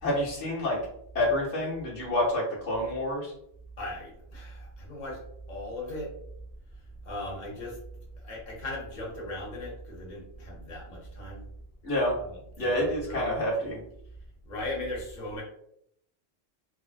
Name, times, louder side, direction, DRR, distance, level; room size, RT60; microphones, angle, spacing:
voice 1, 0.0-0.8 1.1-3.3 11.8-12.2 12.6-13.8, left 1 dB, 85° left, -5 dB, 1.2 m, -28 dB
voice 2, 3.8-5.2 5.5-6.1 7.0-7.8 8.2-11.4 12.2-12.3 12.6-13.4 14.4-15.4, left 1 dB, 45° left, -3 dB, 0.9 m, -37 dB
2.6 x 2.0 x 2.4 m, 0.72 s
omnidirectional pair, 1.1 m